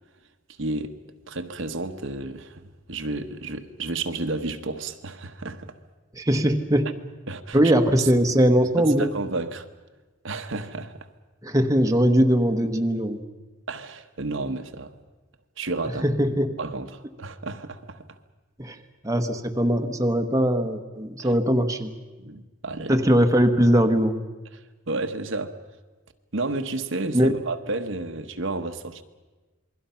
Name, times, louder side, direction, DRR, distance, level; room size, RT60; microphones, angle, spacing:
voice 1, 0.6-0.9 1.3-5.8 7.3-7.6 8.8-9.6 10.2-11.1 13.7-15.0 15.6-16.0 16.6-18.2 21.2-21.3 22.2-23.0 24.9-25.5 26.3-29.0, right 2 dB, 70° right, 1.2 m, -31 dB
voice 2, 6.1-6.9 7.5-9.1 11.4-13.2 16.0-16.6 18.6-18.8 19.0-21.9 22.9-24.2 27.1-27.4, equal, 15° right, 1.1 m, -20 dB
27.5 x 22.0 x 5.7 m
head